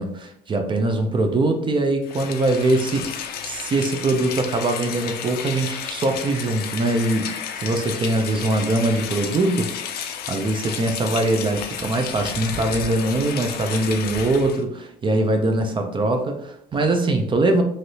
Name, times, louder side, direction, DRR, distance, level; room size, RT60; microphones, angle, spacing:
voice 1, 0.0-17.6, right 2 dB, 30° right, 5 dB, 0.4 m, -22 dB
Rain, 2.0-14.6, left 8 dB, 70° left, 0.4 m, -32 dB
3.2 x 2.5 x 2.7 m, 0.73 s
cardioid pair, 110°, 17 cm